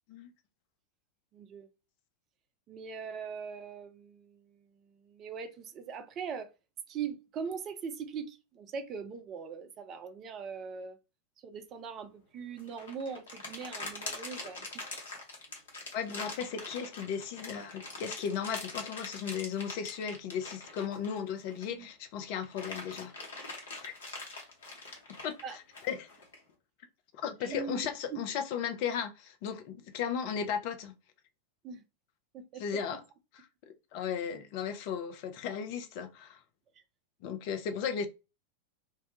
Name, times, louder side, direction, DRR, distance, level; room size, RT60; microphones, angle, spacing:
voice 1, 1.3-1.7 2.7-6.5 6.9-11.0 11.4-14.6 21.7-21.9 25.4-25.6 27.4-28.2 31.6-31.8 32.3-32.6, right 6 dB, 30° right, 0.4 m, -41 dB
sound 1, 12.6-21.8 22.2-26.4, left 3 dB, 65° left, 0.8 m, -43 dB
voice 2, 15.9-23.3 23.8-23.9 25.2-25.6 25.8-26.1 27.2-30.9 32.6-33.0 33.9-36.4 37.2-38.1, left 7 dB, 45° left, 0.4 m, -35 dB
2.2 x 2.1 x 2.8 m
figure-of-eight pair, 90°, 0 cm